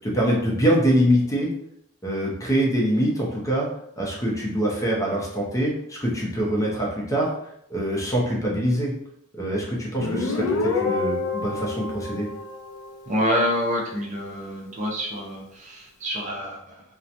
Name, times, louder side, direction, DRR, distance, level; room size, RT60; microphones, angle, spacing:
voice 1, 0.0-1.5 2.0-3.7 4.0-7.3 7.7-8.9 9.3-12.3, equal, 15° left, -3 dB, 0.5 m, -24 dB
Guitar, 10.0-13.5, left 3 dB, 70° left, 0.4 m, -28 dB
voice 2, 13.1-16.8, equal, 35° right, -1 dB, 0.5 m, -27 dB
2.8 x 2.1 x 2.5 m, 0.73 s
head